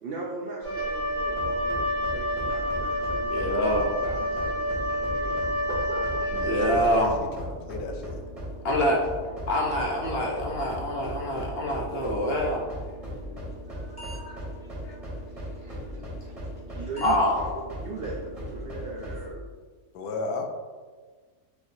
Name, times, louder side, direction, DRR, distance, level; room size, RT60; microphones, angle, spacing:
voice 1, 0.0-3.6 4.0-6.3 15.3-15.8 16.2-16.3 16.7-17.2 17.8-19.5, right 3 dB, 85° right, -2 dB, 0.5 m, -39 dB
Wind instrument woodwind instrument, 0.6-7.2, equal, 65° right, 1.9 m, -29 dB
sound 1, 1.2-19.3, equal, 25° right, 1.5 m, -38 dB
voice 2, 3.3-3.9 6.4-7.2 8.6-9.0 9.5-12.6 13.9-14.4 14.8-15.0 17.0-17.4, equal, 60° left, -2 dB, 0.6 m, -26 dB
voice 3, 6.6-7.1 7.4-8.2 19.9-20.4, left 3 dB, 80° left, 3 dB, 1.1 m, -34 dB
sound 2, 13.6-13.7 14.0-14.4 14.9-15.0 16.4-16.6 16.9-17.1 17.4-17.5 18.0-18.1 18.5-18.6 18.8-19.2, right 2 dB, 5° left, 1.1 m, -43 dB
5.0 x 3.1 x 2.6 m, 1.5 s
omnidirectional pair, 1.6 m